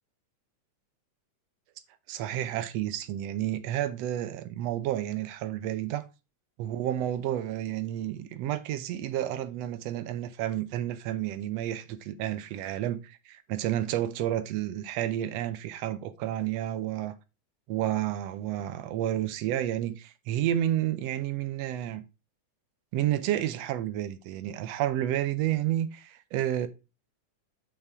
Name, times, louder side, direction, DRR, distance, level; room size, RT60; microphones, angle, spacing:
voice 1, 2.1-6.0 6.6-17.1 17.7-22.0 22.9-26.7, right 12 dB, 75° right, 1.6 m, -30 dB
8.2 x 5.7 x 3.5 m
omnidirectional pair, 3.5 m